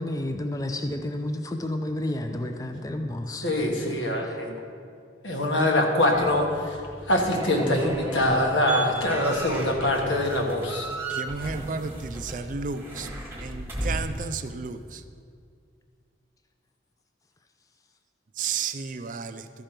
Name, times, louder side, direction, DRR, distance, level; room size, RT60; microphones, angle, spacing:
voice 1, 0.0-3.5 4.2-4.4, left 1 dB, 20° left, 0.5 m, -31 dB
voice 2, 3.4-4.5 5.2-6.8 7.1-10.9, left 1 dB, 90° left, 1.4 m, -24 dB
sound 1, 6.1-14.2, right 2 dB, 10° right, 1.2 m, -36 dB
voice 3, 11.2-13.1 13.4-14.8 18.4-19.4, right 5 dB, 45° right, 0.4 m, -32 dB
13.0 x 5.1 x 5.9 m
head